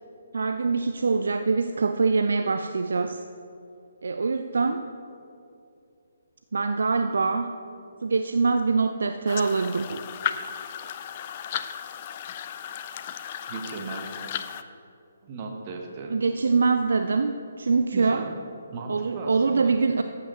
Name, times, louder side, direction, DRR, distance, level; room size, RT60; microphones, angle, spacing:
voice 1, 0.3-3.2 4.0-4.8 6.5-7.6 8.0-10.1 16.1-18.2 18.9-20.0, right 4 dB, 60° right, 8 dB, 0.4 m, -24 dB
sound 1, 9.3-14.6, left 9 dB, 30° left, 0.3 m, -35 dB
voice 2, 13.5-14.1 15.2-16.2 17.9-18.3 18.7-19.7, right 4 dB, 30° right, 2 dB, 1.1 m, -36 dB
14.5 x 8.3 x 3.1 m, 2.6 s
figure-of-eight pair, 135°, 0 cm